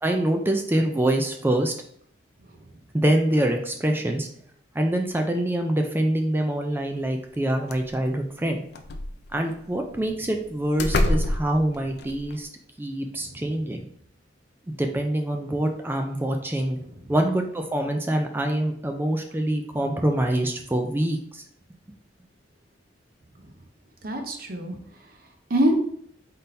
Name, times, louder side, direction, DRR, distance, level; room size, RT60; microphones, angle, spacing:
voice 1, 0.0-1.7 2.9-4.3 4.8-8.6 9.3-12.5 12.8-13.9 14.8-16.8 17.1-21.4, right 1 dB, 10° right, 4 dB, 0.3 m, -25 dB
sound 1, 7.3-7.4 7.7-8.1 8.7-9.6 10.3-10.4 10.8-12.4, left 1 dB, 60° left, 0.4 m, -26 dB
voice 2, 24.0-24.8 25.5-25.8, equal, 50° right, 4 dB, 0.7 m, -25 dB
4.1 x 3.7 x 2.6 m, 0.66 s
head